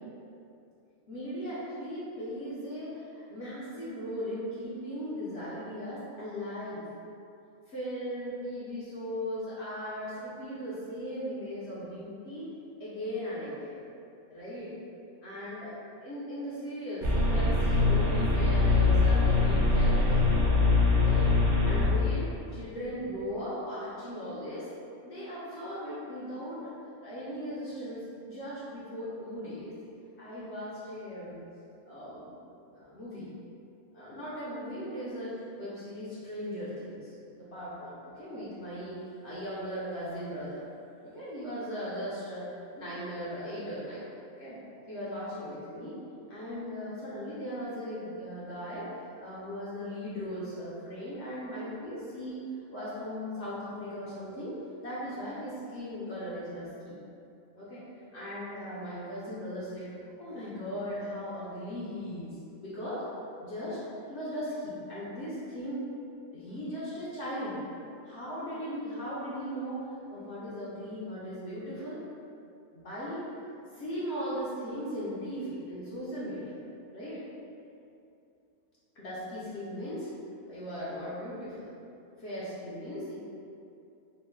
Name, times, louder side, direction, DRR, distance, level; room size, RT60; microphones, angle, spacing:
voice 1, 1.1-6.8 7.7-12.5 12.8-13.8 14.3-14.7 15.2-15.7 16.0-20.2 20.9-21.3 21.6-24.7 25.0-26.7 27.0-29.7 30.2-31.4 31.9-32.3 32.6-33.3 33.9-40.6 41.0-42.5 42.8-44.0 44.4-44.6 44.9-46.0 46.3-48.9 49.2-52.4 52.7-54.5 54.8-57.0 57.5-59.9 60.2-62.4 62.6-63.0 63.4-63.8 64.1-65.9 66.3-67.6 68.0-72.0 72.7-73.2 73.7-76.5 76.9-77.3 79.0-80.1 80.5-81.7 82.2-83.2, equal, 60° left, -10 dB, 0.8 m, -38 dB
sound 1, 17.0-22.1, left 3 dB, 55° right, 0.5 m, -23 dB
3.0 x 2.1 x 3.3 m, 2.6 s
omnidirectional pair, 1.5 m